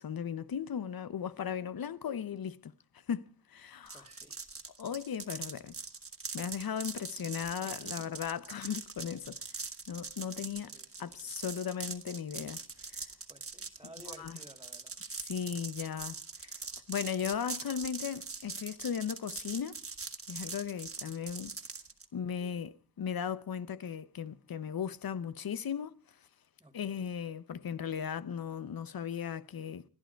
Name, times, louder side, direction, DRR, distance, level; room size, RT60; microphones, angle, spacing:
voice 1, 0.0-2.7 3.1-4.1 4.8-5.8 6.3-9.4 9.9-10.7 11.0-12.6 12.9-13.1 14.1-14.4 15.2-16.2 16.9-19.8 20.3-21.6 22.1-26.0 26.7-29.9, left 8 dB, 85° left, 0.8 m, -37 dB
voice 2, 3.9-4.4 7.6-8.2 10.6-11.3 13.3-14.9 16.3-16.6 22.1-22.6 26.6-27.1, right 1 dB, 10° right, 2.4 m, -56 dB
sound 1, 3.9-22.1, right 4 dB, 40° right, 1.6 m, -42 dB
29.5 x 10.5 x 4.5 m
wide cardioid pair, 70°, 35 cm